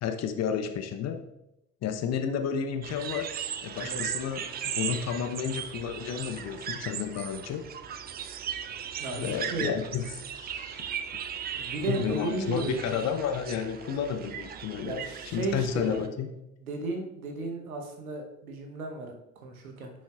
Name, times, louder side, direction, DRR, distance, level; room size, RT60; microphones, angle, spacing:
voice 1, 0.0-1.2 1.8-3.3 3.6-4.4 4.7-7.6 9.1-10.0 10.3-10.8 11.9-15.0 15.2-16.3, left 7 dB, 40° left, 7 dB, 0.7 m, -31 dB
sound 1, 2.8-16.1, right 8 dB, 25° right, 0.4 m, -37 dB
voice 2, 9.0-9.7 11.5-12.8 14.8-16.0 16.6-19.9, right 3 dB, 75° right, 4 dB, 1.1 m, -34 dB
9.6 x 6.2 x 2.4 m, 0.85 s
figure-of-eight pair, 60°, 43 cm